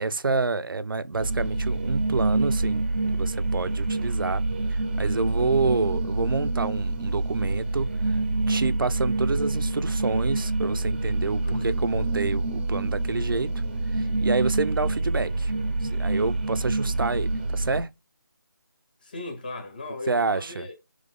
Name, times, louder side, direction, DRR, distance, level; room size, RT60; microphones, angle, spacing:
voice 1, 0.0-2.8 3.1-4.4 4.7-7.9 8.5-13.5 14.2-15.5 15.9-17.9 20.1-20.7, right 3 dB, 85° right, 0.5 m, -28 dB
sound 1, 1.1-17.8, right 2 dB, 25° right, 0.6 m, -27 dB
voice 2, 11.4-11.8 19.0-20.8, left 3 dB, 25° left, 0.7 m, -37 dB
3.8 x 3.2 x 3.5 m
figure-of-eight pair, 170°, 11 cm